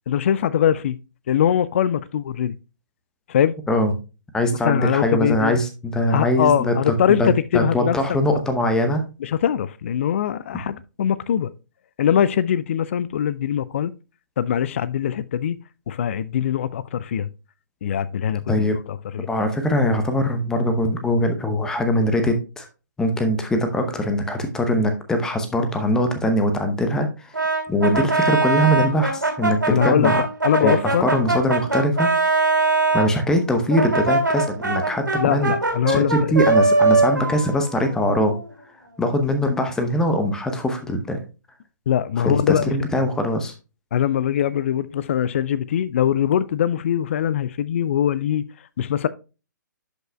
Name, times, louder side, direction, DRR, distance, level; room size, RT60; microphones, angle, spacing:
voice 1, 0.1-1.0 1.3-2.6 3.3-3.6 4.6-5.6 6.1-8.0 9.2-11.5 12.0-13.9 14.4-15.6 15.9-17.3 17.8-19.3 29.7-31.1 35.2-36.4 41.9-43.1 43.9-48.4 48.8-49.1, left 9 dB, 40° left, 0.4 m, -22 dB
voice 2, 4.3-6.9 7.2-9.0 18.5-18.8 19.3-22.7 23.0-27.4 27.7-30.2 30.6-32.1 32.9-35.5 35.9-38.4 39.0-41.2 42.2-43.5, left 1 dB, 5° left, 0.8 m, -22 dB
Brass instrument, 27.3-33.1 33.7-38.5, right 3 dB, 75° right, 2.9 m, -21 dB
11.5 x 5.5 x 2.2 m
figure-of-eight pair, 130°, 10 cm